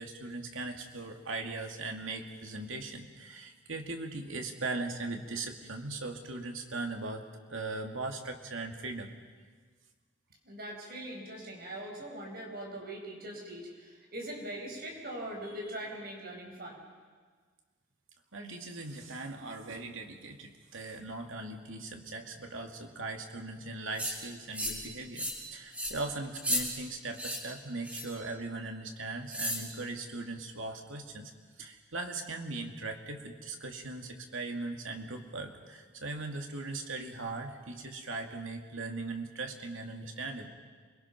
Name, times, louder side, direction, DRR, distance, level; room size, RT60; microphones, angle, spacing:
voice 1, 0.0-7.2 7.5-9.1 18.3-31.3 31.6-40.5, right 3 dB, 85° right, 4 dB, 2.3 m, -39 dB
voice 2, 10.4-16.8, right 1 dB, 50° right, 0 dB, 5.2 m, -41 dB
sound 1, 24.0-24.1 24.5-24.8 25.2-25.4 25.7-25.9 26.3-26.6 27.1-27.4 27.8-28.2 29.3-29.6, equal, 5° right, 3.2 m, -33 dB
28.0 x 22.0 x 6.0 m, 1.5 s
head